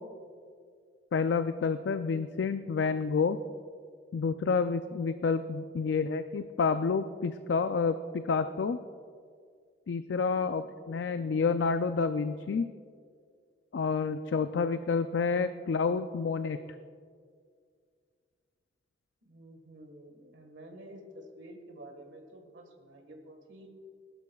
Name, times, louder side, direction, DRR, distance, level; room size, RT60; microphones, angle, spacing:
voice 1, 1.1-3.4 4.1-8.8 9.9-12.7 13.7-16.6, left 5 dB, 75° left, 10 dB, 0.4 m, -29 dB
voice 2, 19.2-23.7, right 1 dB, 90° right, 3 dB, 1.6 m, -50 dB
19.5 x 12.0 x 2.3 m, 2.1 s
head